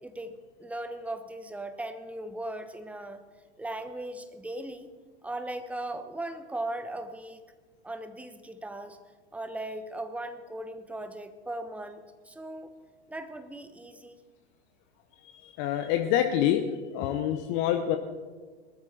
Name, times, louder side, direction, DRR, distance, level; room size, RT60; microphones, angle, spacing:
voice 1, 0.0-3.2 3.6-4.9 5.2-7.4 7.8-9.0 9.3-12.7 13.1-14.2, right 1 dB, 5° right, 10 dB, 1.1 m, -38 dB
voice 2, 15.2-16.6 16.9-18.0, left 11 dB, 40° left, 6 dB, 1.1 m, -26 dB
20.5 x 13.5 x 4.4 m, 1.4 s
figure-of-eight pair, 95°, 33 cm